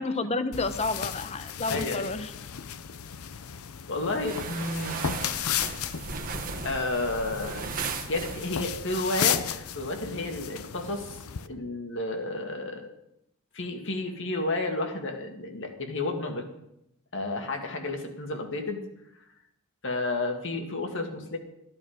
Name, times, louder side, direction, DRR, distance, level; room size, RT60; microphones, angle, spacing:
voice 1, 0.0-2.3, left 3 dB, 30° left, 11 dB, 0.8 m, -30 dB
sound 1, 0.5-11.5, left 9 dB, 75° left, 0.6 m, -34 dB
voice 2, 1.7-2.1 3.9-5.0 6.6-7.7 8.1-12.9 13.5-16.5 17.1-18.8 19.8-21.4, left 2 dB, 55° left, 4 dB, 2.0 m, -31 dB
sound 2, 4.1-8.8, right 5 dB, 40° right, 1.4 m, -36 dB
14.5 x 11.0 x 5.1 m, 0.82 s
head